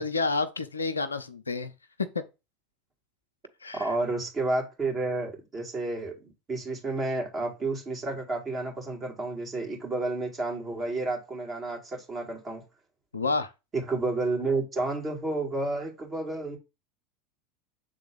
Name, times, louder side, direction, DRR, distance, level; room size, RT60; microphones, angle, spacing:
voice 1, 0.0-1.7 2.1-2.2 3.6-3.9 13.1-13.5, left 3 dB, 85° left, 0.5 m, -29 dB
voice 2, 3.8-12.6 13.7-16.6, right 2 dB, 30° right, 2.5 m, -31 dB
7.0 x 3.7 x 3.9 m
figure-of-eight pair, 80°, 0 cm